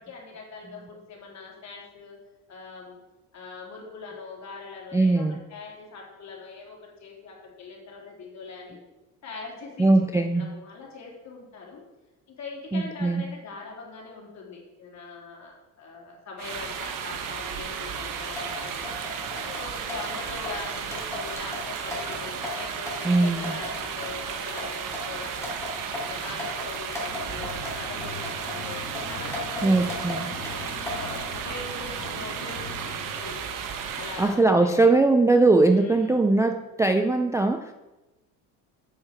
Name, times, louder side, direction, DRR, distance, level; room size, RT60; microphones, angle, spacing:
voice 1, 0.0-2.2 2.5-3.0 3.3-8.8 9.2-11.8 12.3-19.0 19.5-25.5 25.9-28.2 28.5-28.8 29.1-33.5 34.0-34.9 35.7-36.2, left 4 dB, 45° left, -2 dB, 3.4 m, -42 dB
voice 2, 4.9-5.4 9.8-10.5 12.7-13.2 23.0-23.5 29.6-30.3 34.2-37.7, right 2 dB, 10° right, 6 dB, 0.4 m, -20 dB
sound 1, 16.4-34.4, right 7 dB, 55° right, 1.2 m, -34 dB
sound 2, 18.3-31.3, left 2 dB, 5° left, 2.9 m, -38 dB
sound 3, 27.1-33.9, left 3 dB, 60° left, 2.1 m, -42 dB
7.8 x 6.4 x 6.0 m, 1.1 s
cardioid pair, 105°, 38 cm